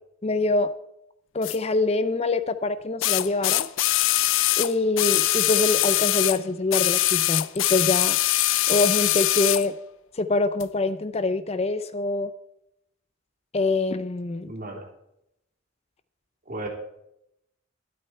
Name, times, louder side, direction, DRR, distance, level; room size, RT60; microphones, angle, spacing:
voice 1, 0.2-0.7 1.3-3.7 4.6-8.2 8.7-9.7 10.2-12.3 13.5-14.5, left 3 dB, 35° left, 13 dB, 0.5 m, -25 dB
sound 1, 1.4-1.6 3.0-6.4 6.7-9.7 10.6-10.7, left 16 dB, 85° left, 0.5 m, -22 dB
voice 2, 14.4-14.9 16.5-16.7, right 1 dB, 45° right, 1 dB, 3.0 m, -34 dB
12.0 x 12.0 x 4.5 m, 0.82 s
head